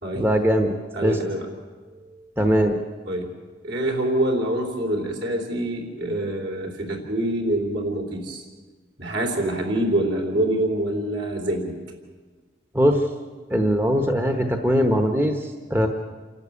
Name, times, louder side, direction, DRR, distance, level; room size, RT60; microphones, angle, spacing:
voice 1, 0.1-0.7 1.0-1.2 2.4-2.8 12.7-13.0 13.5-15.9, equal, 10° right, 5 dB, 1.0 m, -20 dB
voice 2, 0.9-1.5 2.0-2.2 3.1-3.3 3.6-8.4 9.0-11.7, right 1 dB, 65° right, 1 dB, 3.3 m, -25 dB
28.0 x 12.0 x 8.4 m, 1.4 s
head